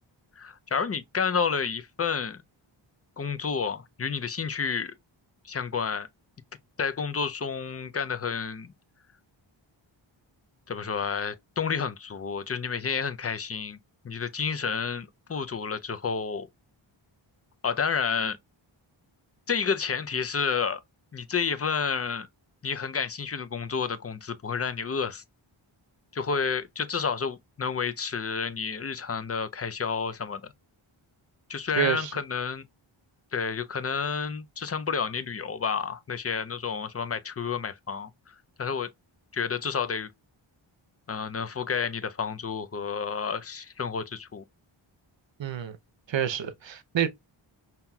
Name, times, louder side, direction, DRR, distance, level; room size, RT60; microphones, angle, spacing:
voice 1, 0.4-2.4 3.2-4.9 5.4-6.1 6.8-8.7 10.7-13.8 14.0-16.5 17.6-18.4 19.5-20.8 21.1-22.3 22.6-25.2 26.1-30.5 31.5-32.6 33.3-38.9 39.3-40.1 41.1-44.4, left 6 dB, 30° left, 0.5 m, -30 dB
voice 2, 31.8-32.1 45.4-45.8 46.1-47.1, right 9 dB, 60° right, 0.7 m, -28 dB
5.6 x 2.8 x 2.2 m
wide cardioid pair, 95°, 50 cm